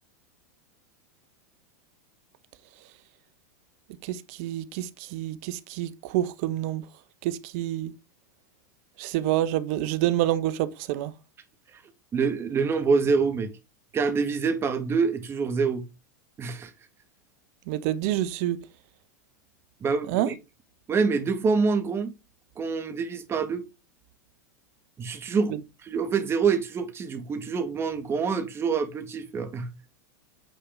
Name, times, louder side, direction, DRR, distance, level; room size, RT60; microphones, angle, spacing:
voice 1, 4.0-6.8 7.2-7.9 9.0-11.1 17.7-18.6 20.1-20.3, right 13 dB, 55° right, 1.0 m, -27 dB
voice 2, 12.1-13.5 13.9-15.8 16.4-16.7 19.8-20.3 20.9-22.1 22.6-23.6 25.0-29.7, right 5 dB, 25° right, 2.1 m, -26 dB
9.3 x 4.7 x 3.7 m
hypercardioid pair, 95°, 9 cm